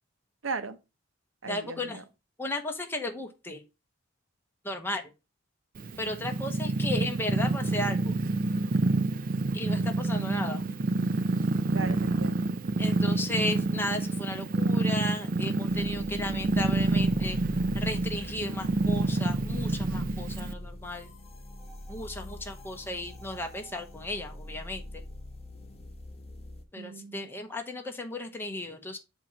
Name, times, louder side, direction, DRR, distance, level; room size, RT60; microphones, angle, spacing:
voice 1, 0.4-0.8 1.4-2.0 11.7-12.5 26.8-27.3, right 4 dB, 70° right, 0.9 m, -37 dB
voice 2, 1.5-2.0 2.4-3.6 4.6-5.0 6.0-8.1 9.5-10.6 12.8-17.4 17.7-21.1 21.9-25.0 26.7-29.0, left 1 dB, 10° left, 0.9 m, -35 dB
Purr, 5.8-20.5, right 2 dB, 45° right, 0.5 m, -28 dB
sound 1, 15.7-26.6, left 1 dB, 30° left, 1.1 m, -42 dB
7.8 x 2.8 x 5.8 m
head